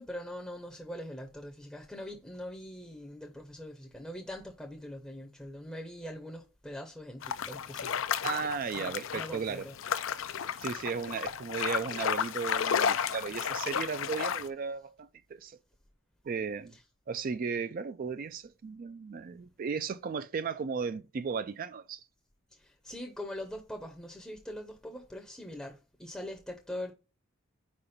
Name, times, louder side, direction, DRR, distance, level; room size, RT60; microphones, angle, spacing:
voice 1, 0.0-8.5 8.7-9.8 16.7-16.8 22.5-26.9, left 1 dB, 5° left, 0.7 m, -43 dB
sound 1, 7.2-14.5, left 8 dB, 75° left, 0.4 m, -33 dB
voice 2, 8.2-9.7 10.6-15.6 16.2-16.7 17.1-22.0, right 5 dB, 45° right, 0.3 m, -35 dB
4.8 x 4.3 x 5.0 m
head